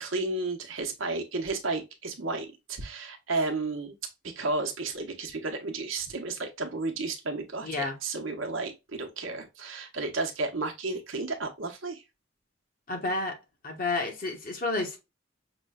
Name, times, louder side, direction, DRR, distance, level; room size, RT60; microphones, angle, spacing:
voice 1, 0.0-3.9 4.2-12.0, right 3 dB, 80° right, 0.8 m, -32 dB
voice 2, 7.6-7.9 12.9-13.4 13.6-15.0, left 3 dB, 45° left, 1.0 m, -30 dB
5.9 x 2.2 x 2.3 m
head